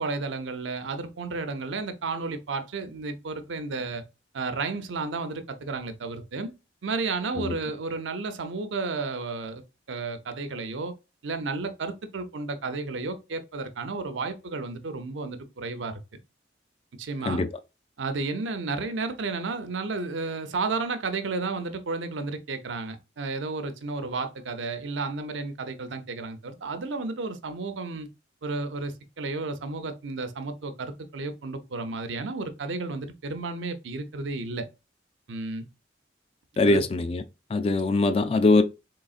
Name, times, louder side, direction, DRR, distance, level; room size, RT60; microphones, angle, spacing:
voice 1, 0.0-4.0 4.3-6.5 6.8-10.9 11.2-16.0 17.0-17.4 18.0-28.1 28.4-34.7 35.3-35.7 36.6-36.8, right 3 dB, 85° right, 0.6 m, -32 dB
voice 2, 36.6-37.2 37.5-38.6, left 2 dB, 30° left, 0.3 m, -22 dB
3.8 x 3.3 x 2.4 m
head